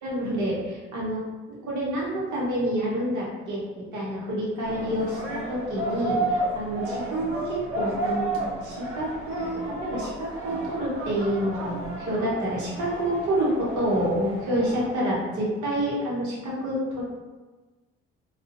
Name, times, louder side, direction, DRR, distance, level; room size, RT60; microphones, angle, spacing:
voice 1, 0.0-1.2 1.6-6.8 7.1-8.2 8.6-17.0, right 1 dB, 70° right, -5 dB, 1.0 m, -28 dB
sound 1, 4.6-14.9, right 2 dB, 45° right, 0.8 m, -32 dB
2.5 x 2.3 x 2.5 m, 1.3 s
hypercardioid pair, 50°, 31 cm